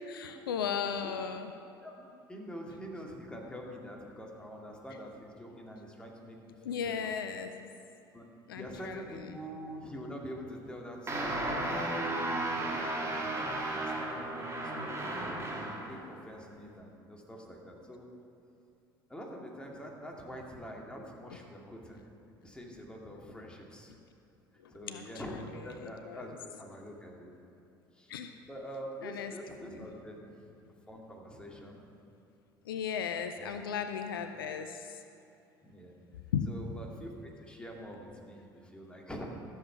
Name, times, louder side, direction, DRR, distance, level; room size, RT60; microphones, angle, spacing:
voice 1, 0.1-1.5 6.6-7.7 8.5-9.4 24.6-25.0 25.8-26.4 28.1-28.3 29.0-29.3 29.6-29.9 32.6-35.0 36.3-36.5, left 7 dB, 75° left, 8 dB, 0.6 m, -36 dB
voice 2, 1.8-7.1 8.1-8.3 8.5-11.3 11.6-15.2 15.5-18.1 19.1-22.0 22.4-23.9 24.7-25.4 25.6-27.3 27.9-28.1 28.5-30.5 30.9-31.8 33.4-33.6 35.6-35.9 36.5-39.3, equal, 10° left, -1 dB, 2.3 m, -45 dB
sound 1, 11.1-15.9, right 1 dB, 25° right, 2.4 m, -34 dB
14.0 x 7.3 x 5.9 m, 2.7 s
figure-of-eight pair, 60°, 12 cm